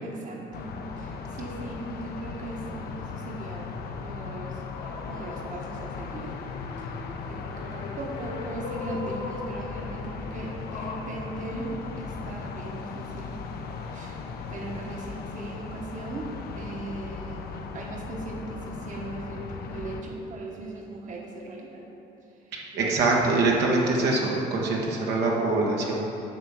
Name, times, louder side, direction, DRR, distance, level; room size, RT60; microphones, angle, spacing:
voice 1, 0.0-3.8 4.0-6.4 7.3-13.4 13.9-14.2 14.5-21.9 22.7-22.9, right 2 dB, 50° right, -1 dB, 1.2 m, -38 dB
sound 1, 0.5-20.0, left 5 dB, 65° left, 0.7 m, -37 dB
sound 2, 4.7-5.7 6.0-11.0, left 3 dB, 80° left, 1.1 m, -40 dB
voice 2, 22.5-26.0, right 3 dB, 80° right, -2 dB, 1.3 m, -24 dB
10.5 x 3.6 x 7.2 m, 3.0 s
cardioid pair, 110°, 17 cm